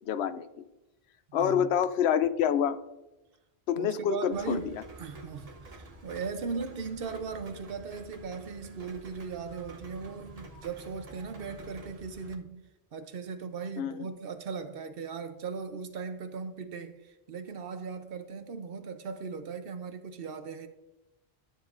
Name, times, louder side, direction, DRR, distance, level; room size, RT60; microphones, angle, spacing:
voice 1, 0.1-0.6 1.3-2.8 3.7-4.8 13.8-14.1, left 8 dB, 85° left, 0.9 m, -27 dB
voice 2, 3.8-12.5 12.9-20.7, right 5 dB, 65° right, 1.0 m, -38 dB
Rain, 4.3-12.3, right 2 dB, 40° right, 0.9 m, -49 dB
12.5 x 7.2 x 2.5 m
omnidirectional pair, 1.1 m